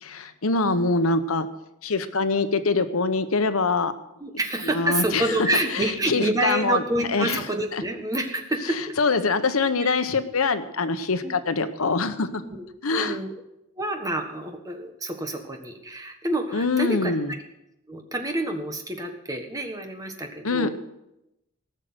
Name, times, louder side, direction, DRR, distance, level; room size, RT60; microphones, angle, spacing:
voice 1, 0.0-1.5 1.8-3.9 4.6-7.4 7.7-7.8 8.6-12.3 12.8-13.2 16.5-17.3 20.4-20.7, left 3 dB, 80° left, 11 dB, 0.9 m, -24 dB
voice 2, 4.2-8.8 9.8-9.9 11.2-11.3 12.3-12.7 12.9-13.3 13.8-17.1 17.9-20.7, right 2 dB, 15° right, 4 dB, 1.5 m, -28 dB
18.0 x 6.5 x 8.0 m, 0.89 s
head